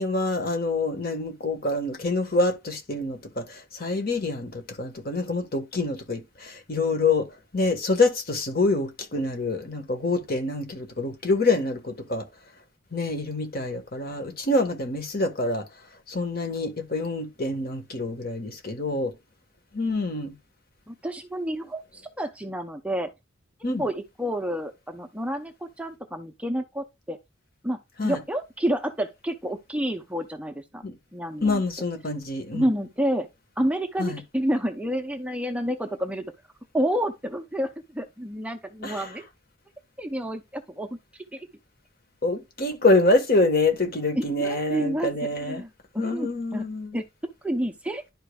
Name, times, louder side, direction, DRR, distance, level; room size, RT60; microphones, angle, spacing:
voice 1, 0.0-7.3 7.5-12.3 12.9-15.6 16.1-19.1 19.7-20.3 23.6-23.8 28.0-28.2 30.8-30.9 31.4-32.7 34.0-34.2 38.8-39.1 42.2-45.6 46.0-47.0, left 2 dB, 50° left, 1.4 m, -26 dB
voice 2, 20.9-23.1 23.8-27.2 27.6-30.8 31.1-31.6 32.5-33.3 33.6-36.3 36.7-39.2 40.0-40.9 41.3-41.5 44.2-45.1 45.4-45.7 45.9-46.6 46.9-47.0 47.4-48.0, equal, 5° right, 0.6 m, -29 dB
11.0 x 5.1 x 2.3 m
head